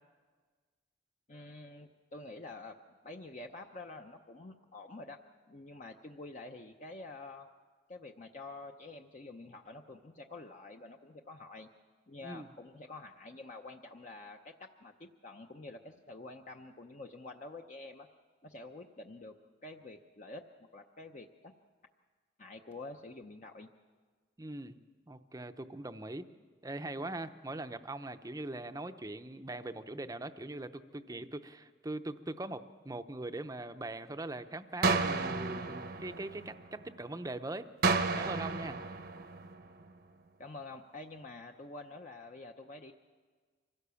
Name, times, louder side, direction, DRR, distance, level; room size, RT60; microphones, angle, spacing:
voice 1, 1.3-2.8 3.0-5.2 5.5-7.5 7.9-11.7 12.1-18.1 18.4-19.3 19.6-20.4 20.7-21.5 22.4-23.7 40.4-42.9, left 2 dB, 40° left, 3 dB, 0.7 m, -48 dB
voice 2, 12.2-12.5 24.4-24.8 25.1-26.3 26.6-37.7 38.2-38.8, right 2 dB, 20° right, 10 dB, 0.6 m, -41 dB
sound 1, 34.8-36.9 37.8-39.9, right 4 dB, 50° right, 0.9 m, -32 dB
25.0 x 16.5 x 7.0 m, 1.5 s
head